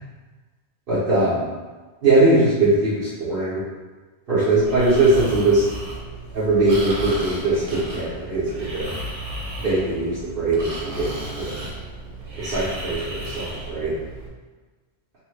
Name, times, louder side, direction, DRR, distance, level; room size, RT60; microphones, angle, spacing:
voice 1, 0.9-1.5 2.0-3.6 4.3-5.6 6.3-8.9 9.6-11.7 12.4-13.9, right 2 dB, 55° right, -11 dB, 1.0 m, -21 dB
Breathing, 4.6-14.3, right 1 dB, 85° right, 1.1 m, -34 dB
3.0 x 2.1 x 3.1 m, 1.3 s
omnidirectional pair, 1.2 m